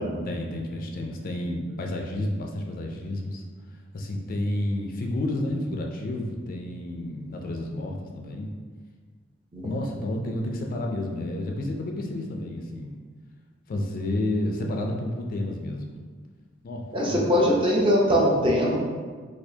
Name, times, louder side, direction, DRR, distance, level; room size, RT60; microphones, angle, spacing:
voice 1, 0.2-3.4 3.9-8.5 9.6-12.9 13.7-16.0 16.6-17.5, left 1 dB, 45° left, 2 dB, 0.3 m, -30 dB
voice 2, 16.9-18.8, equal, 25° right, -3 dB, 0.6 m, -22 dB
4.3 x 2.4 x 2.7 m, 1.5 s
head